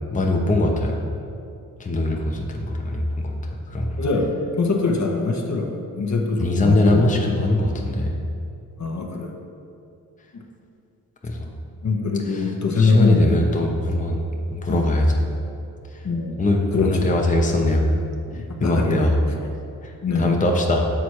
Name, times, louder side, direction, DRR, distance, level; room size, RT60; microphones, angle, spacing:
voice 1, 0.1-1.0 1.8-3.3 3.7-4.0 6.4-8.1 11.2-11.5 12.3-12.5 12.7-14.2 14.5-15.2 16.4-17.8 18.6-19.2 19.8-20.9, left 1 dB, 20° left, 1 dB, 0.8 m, -21 dB
voice 2, 4.0-7.3 8.8-9.4 10.3-10.4 11.8-13.5 14.7-14.8 16.0-16.4 16.7-17.1 18.3-19.1 20.0-20.4, left 3 dB, 45° left, 1 dB, 0.9 m, -23 dB
6.2 x 4.1 x 4.7 m, 2.6 s
supercardioid pair, 50°, 39 cm